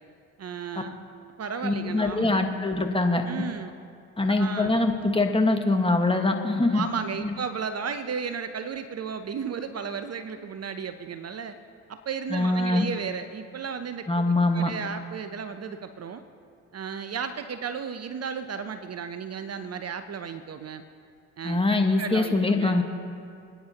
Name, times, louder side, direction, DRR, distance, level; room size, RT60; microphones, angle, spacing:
voice 1, 0.4-1.0 1.4-2.5 3.3-3.7 4.4-4.7 6.7-11.6 11.9-16.2 16.7-20.8 21.4-21.6 22.0-22.8, right 6 dB, 40° right, 10 dB, 0.8 m, -34 dB
voice 2, 1.6-3.2 4.2-6.9 7.2-7.3 12.3-12.9 14.1-14.7 21.4-22.8, left 2 dB, 15° left, 4 dB, 1.5 m, -23 dB
28.5 x 9.5 x 2.9 m, 2.3 s
hypercardioid pair, 50°, 39 cm